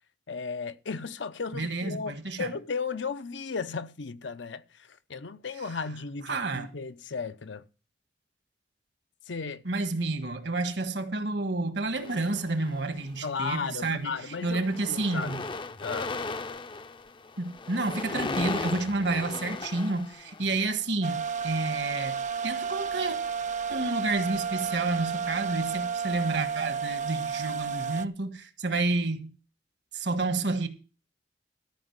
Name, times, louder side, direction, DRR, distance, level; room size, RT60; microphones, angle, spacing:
voice 1, 0.3-7.7 9.3-9.6 13.2-14.6 14.9-15.4 15.8-16.1, left 5 dB, 80° left, 0.7 m, -35 dB
voice 2, 1.5-2.5 6.3-6.7 9.6-14.2 14.4-15.4 17.4-22.2 22.4-23.2 23.7-29.3 29.9-30.7, right 2 dB, 70° right, 1.5 m, -30 dB
sound 1, 12.0-13.0 13.7-14.0 14.2-20.7, left 3 dB, 25° left, 0.5 m, -37 dB
sound 2, 21.0-28.1, right 6 dB, 45° right, 0.5 m, -32 dB
13.5 x 5.3 x 8.0 m
head